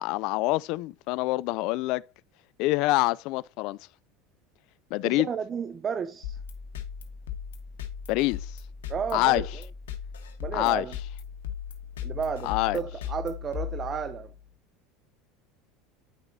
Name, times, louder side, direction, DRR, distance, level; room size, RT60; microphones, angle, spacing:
voice 1, 0.0-2.0 2.6-3.8 4.9-5.3 8.1-8.5 9.1-9.4 10.5-10.9 12.4-12.8, left 20 dB, 65° left, 0.3 m, -26 dB
voice 2, 5.0-6.4 8.9-9.5 10.4-10.9 12.0-14.3, right 7 dB, 35° right, 0.7 m, -32 dB
sound 1, 6.2-14.4, left 8 dB, 85° left, 1.3 m, -37 dB
9.6 x 5.9 x 2.7 m
hypercardioid pair, 80°, 0 cm